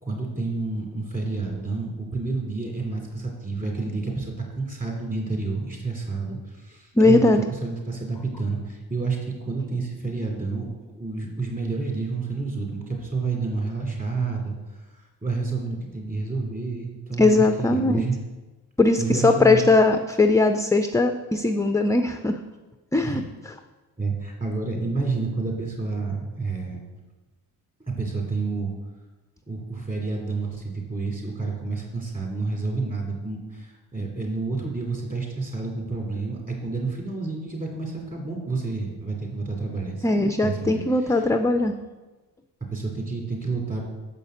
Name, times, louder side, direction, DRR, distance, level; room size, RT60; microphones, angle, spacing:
voice 1, 0.0-7.3 7.6-10.7 11.0-14.5 15.2-18.2 19.0-19.7 23.0-23.2 24.0-26.8 27.9-28.7 29.5-41.3 42.6-43.8, right 3 dB, 20° right, 0 dB, 3.0 m, -29 dB
voice 2, 7.0-7.5 17.2-18.0 18.8-22.4 22.9-23.2 40.0-41.8, left 2 dB, 10° left, 7 dB, 0.4 m, -19 dB
7.2 x 5.4 x 6.4 m, 1.2 s
cardioid pair, 80°, 39 cm